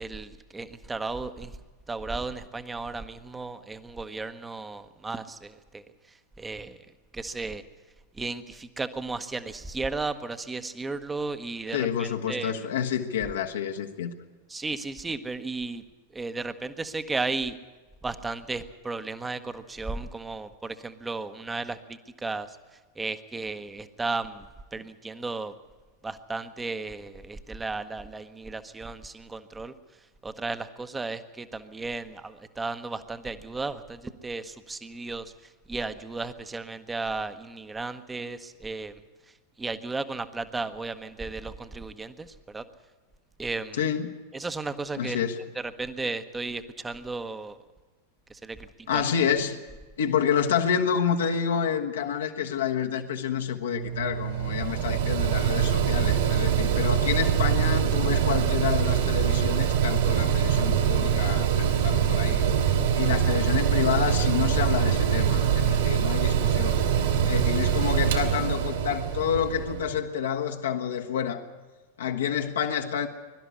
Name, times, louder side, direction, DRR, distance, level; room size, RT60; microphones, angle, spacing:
voice 1, 0.0-1.5 1.9-5.8 6.4-6.8 7.1-7.6 8.2-12.6 14.5-15.8 16.1-17.6 18.0-22.6 23.0-24.5 24.7-25.5 26.0-29.7 30.2-35.3 35.7-39.0 39.6-42.6 43.4-43.8 44.3-45.2 45.6-47.6 48.3-48.7 48.9-49.0, right 3 dB, 10° right, 11 dB, 1.0 m, -34 dB
voice 2, 11.7-14.1 43.7-44.2 45.0-45.4 48.9-49.6 50.0-62.5 62.9-66.8 67.3-71.5 72.0-73.1, left 8 dB, 65° left, 3 dB, 1.3 m, -28 dB
Mechanical fan, 53.7-70.0, right 8 dB, 60° right, 2.7 m, -24 dB
22.0 x 12.5 x 9.7 m, 1.3 s
figure-of-eight pair, 90°, 0 cm